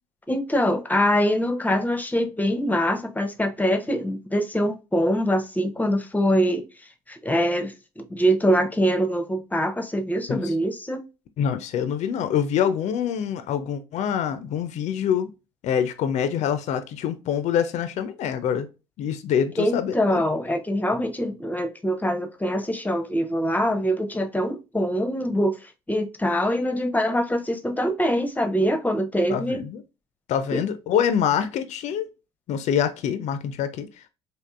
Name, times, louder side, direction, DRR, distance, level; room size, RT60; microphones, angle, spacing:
voice 1, 0.3-6.6 7.1-11.0 19.6-29.6 30.5-30.6, equal, 10° left, 0.7 m, -24 dB
voice 2, 11.4-15.3 15.6-18.7 19.0-20.2 29.3-29.8 30.3-32.1 32.5-34.1, left 8 dB, 55° left, 0.5 m, -25 dB
3.6 x 2.5 x 2.4 m
hypercardioid pair, 60°, 14 cm